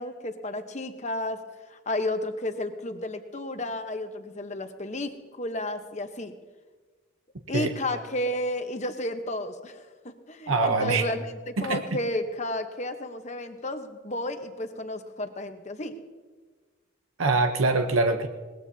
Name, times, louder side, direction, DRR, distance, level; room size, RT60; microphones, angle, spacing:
voice 1, 0.0-1.4 1.7-6.3 7.5-11.2 11.5-15.9, left 1 dB, 35° left, 7 dB, 1.0 m, -32 dB
voice 2, 7.5-8.0 10.5-11.1 11.6-11.8 17.2-18.3, right 3 dB, 80° right, 5 dB, 0.9 m, -24 dB
21.5 x 19.0 x 2.8 m, 1.4 s
head